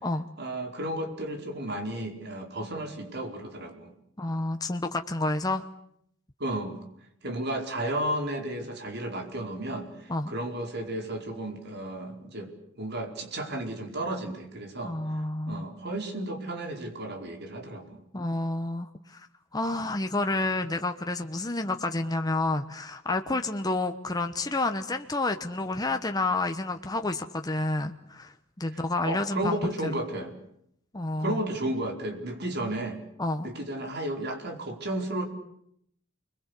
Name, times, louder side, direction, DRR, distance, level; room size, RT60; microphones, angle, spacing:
voice 1, 0.4-3.9 6.4-6.8 7.2-12.5 12.8-14.9 15.5-18.0 29.0-30.3 31.2-33.0 33.4-35.2, right 1 dB, 55° right, 4 dB, 4.8 m, -33 dB
voice 2, 4.2-5.6 10.1-10.3 14.8-15.6 18.1-19.3 19.5-30.0 30.9-31.4 33.2-33.5, left 2 dB, 20° left, 6 dB, 1.1 m, -29 dB
29.5 x 22.0 x 8.4 m, 0.73 s
head